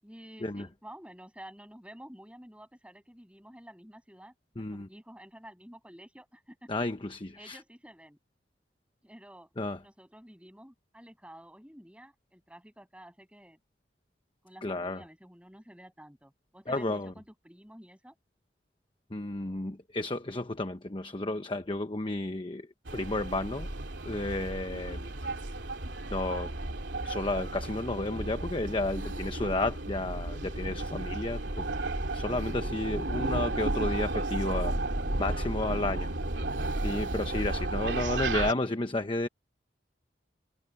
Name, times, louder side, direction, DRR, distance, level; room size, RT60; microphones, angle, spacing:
voice 1, 0.0-6.7 7.4-8.2 9.0-9.5 9.8-13.6 14.4-18.1, equal, 5° right, 7.8 m, -51 dB
voice 2, 4.6-4.9 6.7-7.6 9.6-9.8 14.6-15.0 16.7-17.1 19.1-22.7 22.9-23.7 24.0-25.1 26.1-26.5 27.0-31.7 32.1-34.8 35.2-36.1 36.8-39.3, left 2 dB, 30° left, 1.0 m, -32 dB
sound 1, 22.9-38.5, right 2 dB, 85° right, 2.9 m, -33 dB
head